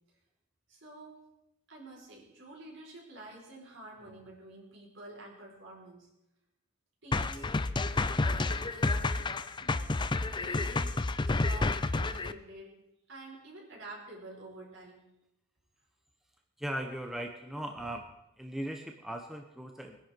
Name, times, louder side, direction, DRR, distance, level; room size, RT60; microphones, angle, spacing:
voice 1, 0.7-1.2 1.7-6.1 7.0-7.5 7.9-9.3 9.6-9.8 10.2-11.0 11.3-12.8 13.1-15.1 17.8-17.9, right 1 dB, 60° right, -2 dB, 4.8 m, -48 dB
sound 1, 7.1-12.3, left 3 dB, 20° left, 0.4 m, -30 dB
voice 2, 16.6-18.0 18.4-20.0, right 1 dB, ahead, 3 dB, 0.9 m, -38 dB
21.5 x 10.5 x 4.5 m, 0.88 s
head